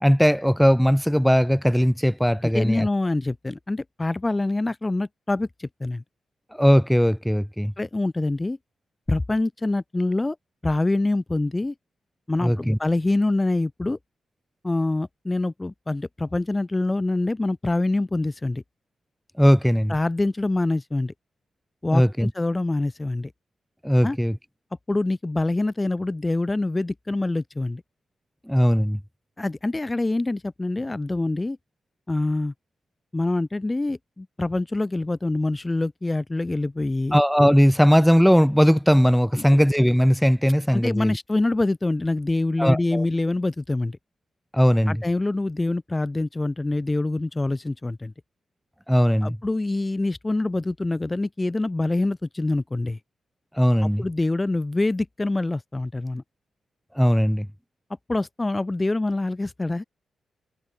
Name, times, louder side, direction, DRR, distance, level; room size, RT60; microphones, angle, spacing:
voice 1, 0.0-2.9 6.6-7.7 12.4-12.8 19.4-19.9 21.9-22.3 23.8-24.4 28.5-29.0 37.1-41.2 42.6-43.0 44.5-45.0 48.9-49.4 53.6-54.0 57.0-57.5, equal, ahead, 0.7 m, -19 dB
voice 2, 2.4-6.0 7.8-8.6 9.1-10.4 10.6-11.7 12.3-14.0 14.6-18.6 19.9-21.1 21.8-23.3 24.0-24.2 24.9-27.8 29.4-31.6 32.1-32.5 33.1-37.2 39.3-39.5 40.7-44.0 44.9-48.1 49.2-53.0 53.8-56.2 58.1-59.8, left 2 dB, 15° left, 2.0 m, -25 dB
cardioid pair, 125°, 0 cm